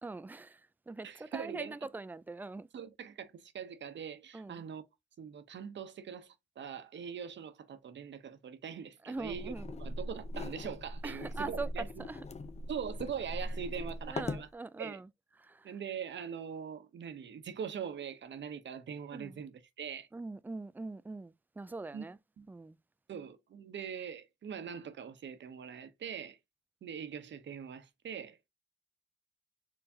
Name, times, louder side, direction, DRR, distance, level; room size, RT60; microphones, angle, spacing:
voice 1, 0.0-0.6 0.9-2.7 4.3-4.6 9.1-9.7 11.0-12.2 14.1-15.1 15.4-15.7 19.1-19.4 20.1-22.2 22.5-22.8, right 3 dB, 10° right, 0.3 m, -42 dB
voice 2, 1.0-1.7 2.7-4.8 5.2-9.5 9.8-12.1 12.7-14.5 14.8-15.0 15.6-20.1 21.9-22.0 22.4-22.5 23.1-26.4 26.8-28.4, right 7 dB, 70° right, 0.7 m, -42 dB
sound 1, 9.2-14.5, left 1 dB, 35° left, 0.6 m, -40 dB
4.5 x 3.1 x 2.7 m
cardioid pair, 60°, 19 cm